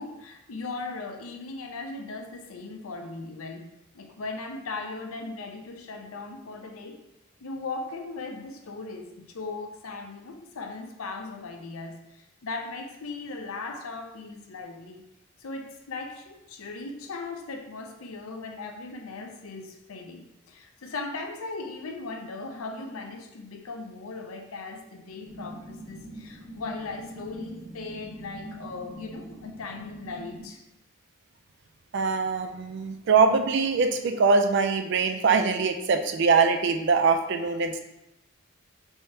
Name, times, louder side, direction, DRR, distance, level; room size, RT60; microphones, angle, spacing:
voice 1, 0.0-3.7 3.9-7.0 7.4-15.0 15.4-30.6, left 3 dB, 85° left, 4 dB, 0.6 m, -38 dB
sound 1, 25.2-30.5, right 1 dB, 80° right, 1.3 m, -43 dB
voice 2, 31.9-37.8, right 4 dB, 55° right, 6 dB, 0.3 m, -23 dB
4.4 x 3.4 x 2.7 m, 0.88 s
head